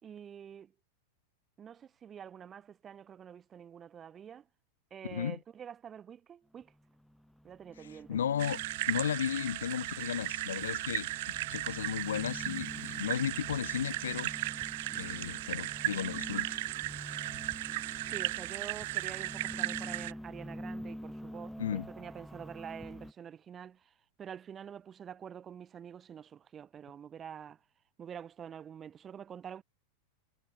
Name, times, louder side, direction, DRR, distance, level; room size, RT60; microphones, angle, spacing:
voice 1, 0.0-0.7 1.6-4.5 4.9-6.7 7.4-8.2 18.1-27.6 28.0-29.6, right 8 dB, 25° right, 3.7 m, -47 dB
sound 1, 6.6-23.1, equal, ahead, 1.1 m, -47 dB
voice 2, 7.8-8.6 8.9-14.3 14.9-16.5 21.6-21.9, left 9 dB, 65° left, 0.8 m, -35 dB
sound 2, 8.4-20.1, right 19 dB, 50° right, 1.8 m, -36 dB
figure-of-eight pair, 90°, 0 cm